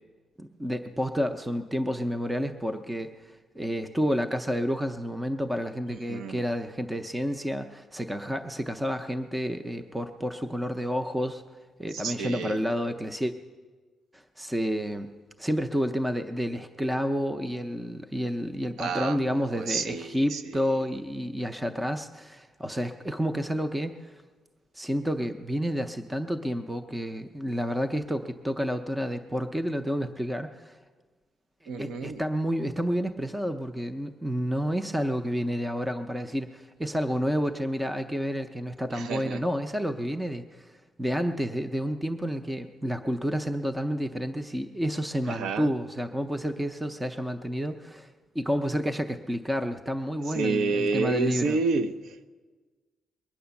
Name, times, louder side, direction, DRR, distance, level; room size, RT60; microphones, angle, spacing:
voice 1, 0.4-11.4 11.8-13.3 14.1-15.1 15.4-24.1 24.7-30.8 31.8-40.7 41.0-48.1 48.3-51.6, equal, 5° right, 7 dB, 0.5 m, -30 dB
voice 2, 5.9-6.4 11.9-12.6 18.8-20.6 31.7-32.2 38.9-39.4 45.3-45.7 50.3-52.3, right 4 dB, 75° right, 12 dB, 0.7 m, -30 dB
21.5 x 9.4 x 6.9 m, 1.4 s
cardioid pair, 165°, 0 cm